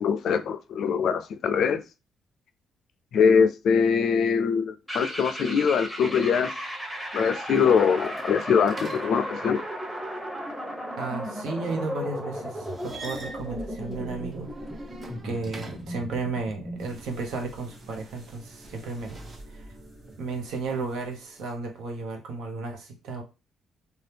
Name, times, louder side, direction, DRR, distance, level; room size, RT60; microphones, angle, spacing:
voice 1, 0.0-1.8 3.1-6.5 7.1-9.6, left 6 dB, 70° left, 0.3 m, -23 dB
sound 1, 4.9-16.9, equal, 10° right, 1.0 m, -35 dB
sound 2, 7.4-9.7 12.5-16.1 18.7-19.4, right 2 dB, 35° right, 0.6 m, -46 dB
voice 2, 11.0-14.5 15.2-19.8 20.2-23.2, right 3 dB, 85° right, 0.8 m, -34 dB
sound 3, 16.8-21.8, right 1 dB, 55° right, 1.1 m, -49 dB
2.7 x 2.3 x 3.3 m
cardioid pair, 90°, 0 cm